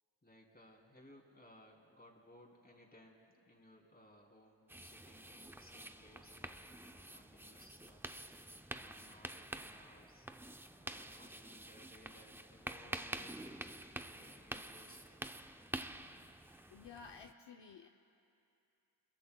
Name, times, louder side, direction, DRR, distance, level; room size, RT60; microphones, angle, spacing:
voice 1, 0.2-8.1 8.8-10.3 10.8-15.1, left 1 dB, 20° left, -1 dB, 3.1 m, -62 dB
sound 1, 4.7-17.3, right 1 dB, 5° right, 0.5 m, -48 dB
voice 2, 16.7-17.9, left 6 dB, 65° left, 4 dB, 0.8 m, -53 dB
27.0 x 22.5 x 2.3 m, 2.7 s
cardioid pair, 65°, 45 cm